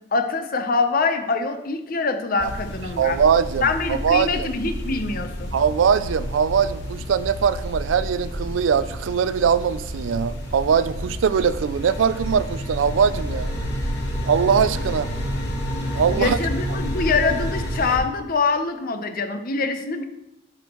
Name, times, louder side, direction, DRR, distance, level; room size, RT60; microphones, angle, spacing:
voice 1, 0.1-3.2 3.6-5.5 16.2-20.0, left 4 dB, 50° left, 7 dB, 0.7 m, -24 dB
sound 1, 2.4-18.0, equal, 70° left, 1.8 m, -30 dB
voice 2, 3.0-4.5 5.5-13.5 14.2-15.1 15.9-16.4, right 7 dB, 85° right, 15 dB, 0.4 m, -21 dB
10.5 x 5.3 x 3.0 m, 0.88 s
head